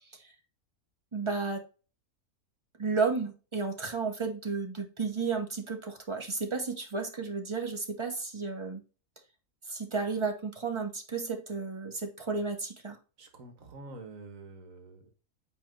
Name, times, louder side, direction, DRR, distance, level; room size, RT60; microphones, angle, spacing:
voice 1, 1.1-1.6 2.8-8.8 9.7-13.0, right 4 dB, 20° right, 4 dB, 1.0 m, -32 dB
voice 2, 13.2-15.1, right 2 dB, 65° right, 6 dB, 1.6 m, -47 dB
8.4 x 3.0 x 3.7 m, 0.34 s
omnidirectional pair, 1.6 m